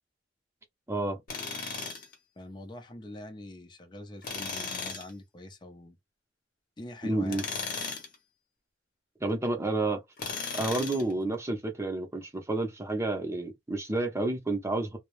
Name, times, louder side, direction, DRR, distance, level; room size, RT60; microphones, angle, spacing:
voice 1, 0.9-1.2 7.0-7.4 9.2-10.0 10.5-15.0, right 2 dB, 15° right, 0.6 m, -30 dB
Tools, 1.3-2.1 4.2-5.1 7.3-8.1 10.2-11.1, left 4 dB, 55° left, 0.8 m, -36 dB
voice 2, 2.4-6.0 6.8-7.5, left 1 dB, 25° left, 0.6 m, -44 dB
2.2 x 2.0 x 3.0 m
head